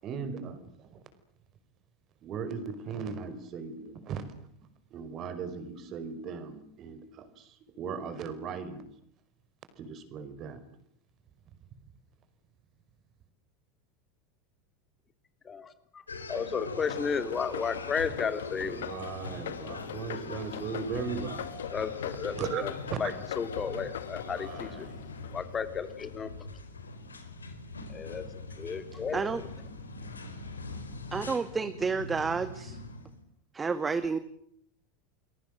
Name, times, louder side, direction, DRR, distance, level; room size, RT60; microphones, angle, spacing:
voice 1, 0.0-1.0 2.2-4.5 4.9-8.9 9.8-10.6 11.5-11.6 18.6-21.7 22.4-22.6 22.9-23.0 24.2-25.2, right 6 dB, 40° right, 12 dB, 5.2 m, -38 dB
voice 2, 15.4-16.0 16.3-18.9 21.7-22.7 23.0-24.9 25.3-26.3 27.9-28.3 28.6-29.4, left 6 dB, 25° left, 10 dB, 3.0 m, -33 dB
sound 1, 16.1-33.2, left 3 dB, 85° left, 4.4 m, -42 dB
sound 2, 16.9-26.0, left 11 dB, 70° left, 1.8 m, -42 dB
voice 3, 31.1-32.8 33.5-34.2, right 5 dB, 20° right, 12 dB, 2.0 m, -30 dB
30.0 x 22.5 x 7.8 m, 0.68 s
hypercardioid pair, 85°, 0 cm